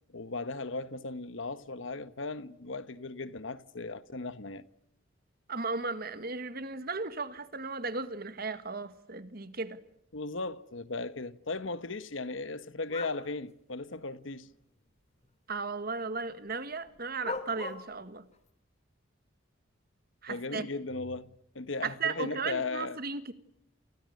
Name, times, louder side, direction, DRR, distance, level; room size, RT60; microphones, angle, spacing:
voice 1, 0.1-4.6 10.1-14.5 20.3-23.0, left 3 dB, 75° left, 1.3 m, -37 dB
voice 2, 5.5-9.8 15.5-18.3 20.2-20.7 21.8-23.3, right 4 dB, 50° right, 1.8 m, -35 dB
sound 1, 12.9-13.2 14.4-14.5 17.2-17.8, left 3 dB, 35° left, 3.5 m, -37 dB
29.5 x 29.5 x 6.6 m
head